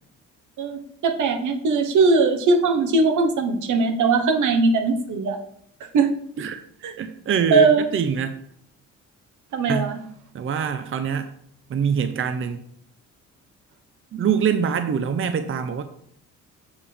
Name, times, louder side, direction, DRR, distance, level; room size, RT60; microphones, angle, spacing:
voice 1, 0.6-5.4 5.9-6.1 6.8-6.9 7.5-7.9 9.5-10.0, right 4 dB, 80° right, 6 dB, 1.2 m, -20 dB
voice 2, 7.0-8.4 9.7-9.9 10.3-11.3 11.7-12.6 14.1-15.8, right 7 dB, 45° right, 9 dB, 0.7 m, -24 dB
7.2 x 6.9 x 3.4 m, 0.69 s
cardioid pair, 90°, 30 cm